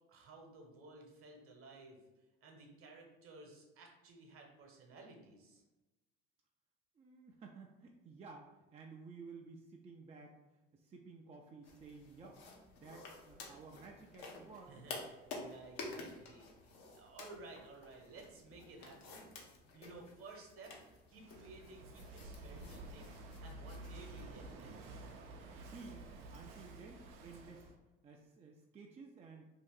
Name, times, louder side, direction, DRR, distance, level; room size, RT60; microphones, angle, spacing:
voice 1, 0.1-2.0 2.4-5.6 14.7-16.5 16.9-19.3 19.7-23.1 23.4-24.9, right 3 dB, 50° right, 1 dB, 1.0 m, -55 dB
voice 2, 6.9-10.4 10.7-12.4 12.7-14.7 16.8-16.9 25.5-27.7 28.0-29.4, right 4 dB, 20° right, 0 dB, 0.4 m, -54 dB
sound 1, 11.6-24.5, left 3 dB, 65° left, 0.8 m, -52 dB
Walk footsteps / Wind / Waves surf, 21.1-27.8, right 2 dB, 80° right, 0.5 m, -51 dB
2.7 x 2.4 x 3.6 m, 1.0 s
hypercardioid pair, 70°, 29 cm